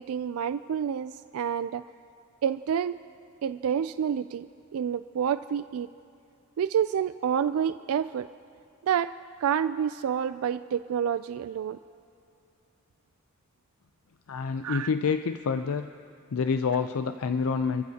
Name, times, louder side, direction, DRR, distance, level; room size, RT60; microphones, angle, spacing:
voice 1, 0.0-1.8 2.4-3.0 3.4-4.5 4.7-5.9 6.6-8.3 8.8-9.1 9.4-11.8 14.6-14.9, right 8 dB, 70° right, 13 dB, 0.3 m, -28 dB
voice 2, 14.3-15.9 16.3-17.8, left 5 dB, 75° left, 9 dB, 0.5 m, -27 dB
29.0 x 14.5 x 2.8 m, 2.6 s
head